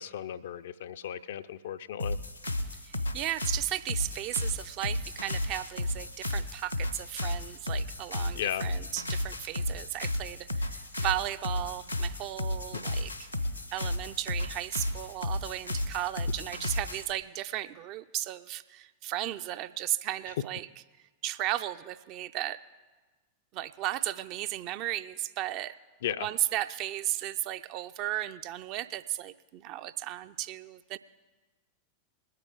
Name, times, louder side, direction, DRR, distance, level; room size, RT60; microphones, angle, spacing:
voice 1, 0.0-2.2 8.3-8.6 26.0-26.3, left 10 dB, 60° left, 12 dB, 0.4 m, -35 dB
sound 1, 2.0-17.1, left 1 dB, 90° left, 0.9 m, -33 dB
voice 2, 2.9-13.1 13.7-20.7 21.2-22.6 23.5-25.7 26.2-31.0, right 14 dB, 40° right, 12 dB, 0.4 m, -35 dB
20.5 x 9.0 x 3.6 m, 1.3 s
figure-of-eight pair, 90°, 0 cm